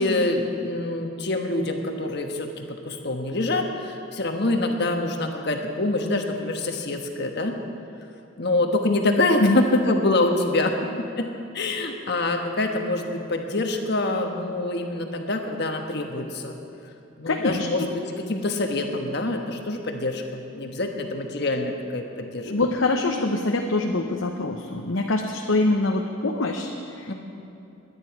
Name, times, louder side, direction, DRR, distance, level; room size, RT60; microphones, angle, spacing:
voice 1, 0.0-7.5 8.4-10.8 11.2-11.3 11.5-16.6 17.2-22.5 27.1-27.2, left 2 dB, 55° left, 3 dB, 1.3 m, -25 dB
voice 2, 17.3-17.9 22.5-27.1, left 2 dB, 80° left, 2 dB, 0.8 m, -24 dB
20.5 x 10.0 x 4.8 m, 2.8 s
head